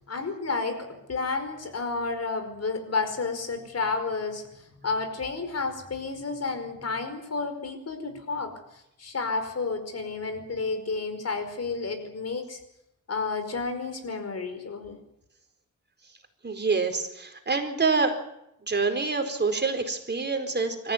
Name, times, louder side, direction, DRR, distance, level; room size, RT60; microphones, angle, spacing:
voice 1, 0.1-12.6 13.1-15.0, left 4 dB, 50° left, 8 dB, 5.1 m, -31 dB
voice 2, 16.4-18.2 18.7-20.9, right 4 dB, 35° right, 5 dB, 4.5 m, -26 dB
25.5 x 15.0 x 9.4 m, 0.82 s
cardioid pair, 85°, 31 cm